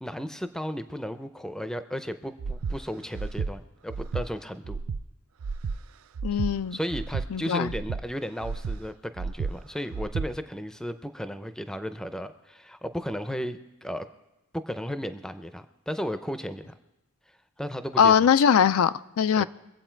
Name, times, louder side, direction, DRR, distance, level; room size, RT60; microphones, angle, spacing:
voice 1, 0.0-4.8 6.7-14.1 14.5-16.7 17.6-18.1 19.4-19.5, equal, 5° left, 0.5 m, -34 dB
Breathing, 2.4-2.8 3.1-3.5 3.9-4.3 4.6-5.0 5.4-5.8 6.1-6.5 6.9-7.3 7.6-8.0 8.4-8.8 9.2-9.5 9.9-10.3, right 5 dB, 80° right, 0.4 m, -31 dB
voice 2, 6.2-6.8 7.3-7.7 18.0-19.4, left 7 dB, 85° left, 0.4 m, -21 dB
23.5 x 8.0 x 4.5 m
head